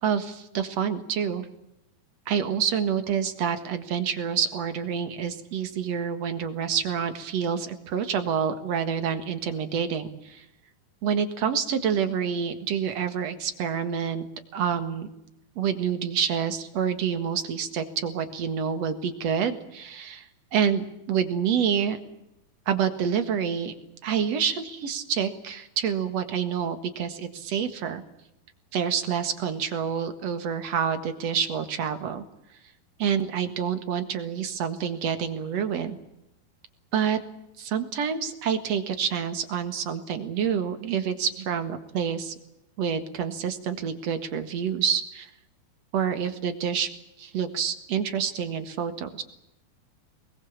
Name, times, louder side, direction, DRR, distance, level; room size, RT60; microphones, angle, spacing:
voice 1, 0.0-1.5 2.3-10.4 11.0-14.2 14.5-15.1 15.6-22.0 22.7-23.7 24.0-28.0 28.7-32.2 33.0-36.0 36.9-37.2 37.6-42.3 42.8-45.3 45.9-46.9 47.2-49.2, right 7 dB, 50° right, 9 dB, 2.2 m, -27 dB
24.5 x 21.5 x 7.3 m, 0.84 s
omnidirectional pair, 4.6 m